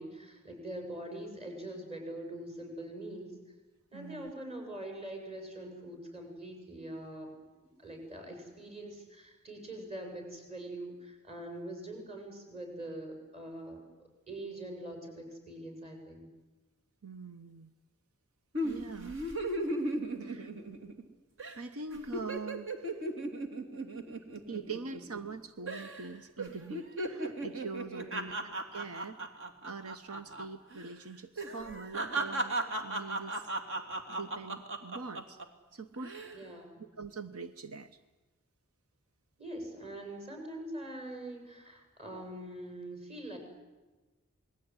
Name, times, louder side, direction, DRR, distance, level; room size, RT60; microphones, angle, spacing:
voice 1, 0.0-3.4 3.9-7.4 7.8-13.8 14.3-16.3 28.0-28.4 36.3-36.8 39.4-43.4, right 1 dB, 30° right, 3 dB, 7.9 m, -43 dB
voice 2, 3.9-4.3 17.0-17.7 18.6-19.2 20.2-20.5 21.5-23.0 24.5-28.3 28.7-29.2 29.6-33.5 34.1-35.4 35.7-36.4 36.8-38.0, right 4 dB, 80° right, 10 dB, 1.1 m, -43 dB
sound 1, 18.5-21.1 21.4-21.6 21.9-25.3 25.7-26.1 26.4-30.5 30.7-30.9 31.4-35.4 35.9-36.4, right 2 dB, 60° right, 3.1 m, -36 dB
28.5 x 21.0 x 9.8 m, 1.2 s
head